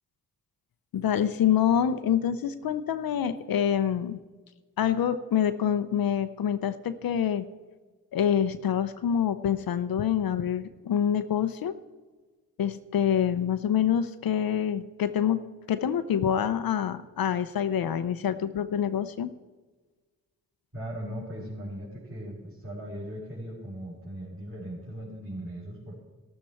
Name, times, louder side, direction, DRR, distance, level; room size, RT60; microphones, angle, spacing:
voice 1, 0.9-4.2 4.8-7.5 8.1-11.8 12.6-15.4 15.7-19.3, left 9 dB, 65° left, 11 dB, 0.7 m, -26 dB
voice 2, 20.7-26.0, equal, 35° right, -7 dB, 4.5 m, -38 dB
12.0 x 12.0 x 4.4 m, 1.3 s
supercardioid pair, 40°, 38 cm